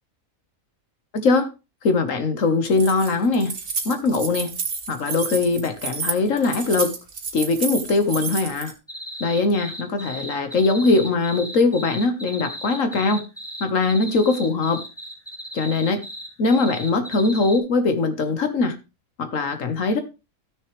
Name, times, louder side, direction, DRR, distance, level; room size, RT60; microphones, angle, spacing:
voice 1, 1.1-1.5 1.8-3.5 3.8-4.5 4.9-6.9 7.3-8.7 9.2-13.2 13.6-14.8 15.5-16.0 16.4-18.7 19.2-20.0, left 3 dB, 70° left, 1.7 m, -21 dB
Keys jangling, 2.6-8.7, right 5 dB, 85° right, 1.9 m, -30 dB
sound 1, 8.9-17.6, equal, 5° left, 2.2 m, -36 dB
14.5 x 6.5 x 3.3 m
omnidirectional pair, 1.4 m